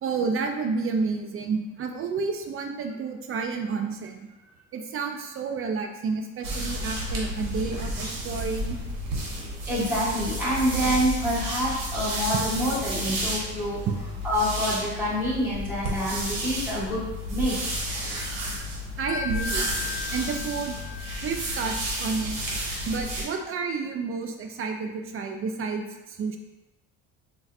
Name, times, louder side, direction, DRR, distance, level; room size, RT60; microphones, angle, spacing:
voice 1, 0.0-4.2 4.7-8.8 13.0-13.1 13.9-14.0 19.0-19.7 20.1-20.8 21.2-22.4 22.9-26.4, right 4 dB, 40° right, 4 dB, 0.4 m, -30 dB
sound 1, 6.4-23.2, equal, 80° right, 1.0 m, -31 dB
voice 2, 9.7-13.8 14.2-17.6, equal, 5° right, -8 dB, 1.3 m, -27 dB
Wind chime, 19.1-22.2, left 9 dB, 40° left, 0.6 m, -37 dB
3.9 x 2.2 x 2.4 m, 1.0 s
cardioid pair, 100°, 33 cm